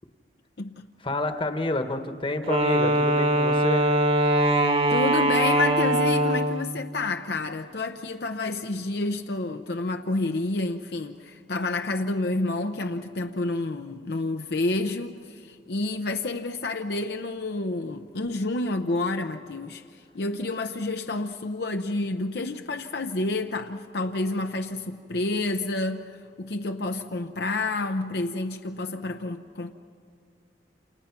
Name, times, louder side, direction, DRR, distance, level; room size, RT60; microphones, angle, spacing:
voice 1, 1.0-3.9, left 2 dB, 30° left, 1.3 m, -29 dB
Wind instrument woodwind instrument, 2.4-6.8, right 1 dB, 35° right, 1.3 m, -22 dB
voice 2, 4.9-29.7, left 2 dB, 65° left, 0.8 m, -29 dB
28.5 x 28.5 x 5.9 m
head